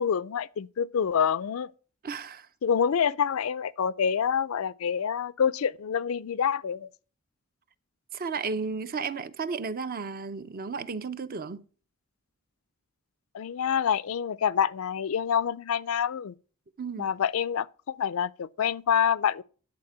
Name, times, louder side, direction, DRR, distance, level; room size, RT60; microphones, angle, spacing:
voice 1, 0.0-1.7 2.6-6.9 13.3-16.3 17.0-19.4, left 7 dB, 85° left, 0.4 m, -27 dB
voice 2, 2.0-2.5 8.1-11.6 16.8-17.1, right 5 dB, 45° right, 0.6 m, -33 dB
10.5 x 4.3 x 7.3 m
head